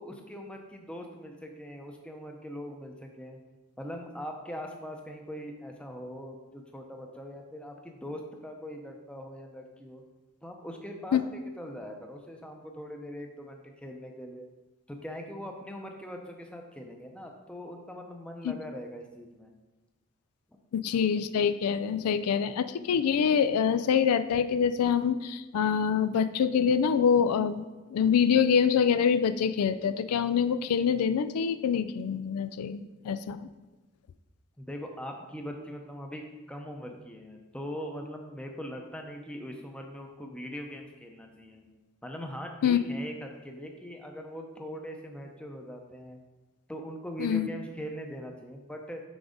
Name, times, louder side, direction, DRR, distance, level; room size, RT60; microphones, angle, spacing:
voice 1, 0.0-3.4 3.8-10.0 10.4-14.5 14.9-19.5 34.6-41.6 42.0-46.2 46.7-49.0, equal, 5° left, 2 dB, 0.6 m, -41 dB
voice 2, 20.7-27.6 27.9-33.5 42.6-42.8 47.2-47.5, left 7 dB, 85° left, 12 dB, 0.4 m, -25 dB
6.2 x 4.7 x 5.1 m, 1.1 s
head